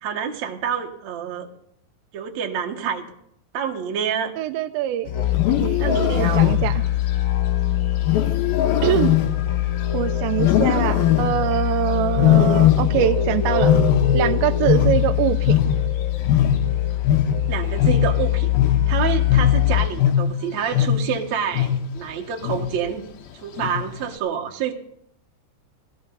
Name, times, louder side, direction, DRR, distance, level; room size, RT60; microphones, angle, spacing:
voice 1, 0.0-1.5 2.1-3.0 3.5-4.3 5.8-6.6 12.4-12.5 17.5-18.5 18.9-23.0 23.3-24.7, right 8 dB, 55° right, 2 dB, 2.2 m, -27 dB
voice 2, 4.4-5.1 5.5-6.8 8.8-9.2 9.9-13.8 14.1-15.6, right 12 dB, 85° right, 8 dB, 3.0 m, -23 dB
Musical instrument, 5.0-20.1, left 12 dB, 50° left, 1.6 m, -23 dB
Wild animals, 5.2-7.0 8.0-9.9 10.4-11.6 12.2-13.2 13.5-16.0 16.3-21.2 21.5-22.0 22.4-22.9 23.6-24.0, left 10 dB, 70° left, 2.8 m, -20 dB
19.5 x 16.5 x 4.0 m, 0.70 s
omnidirectional pair, 5.1 m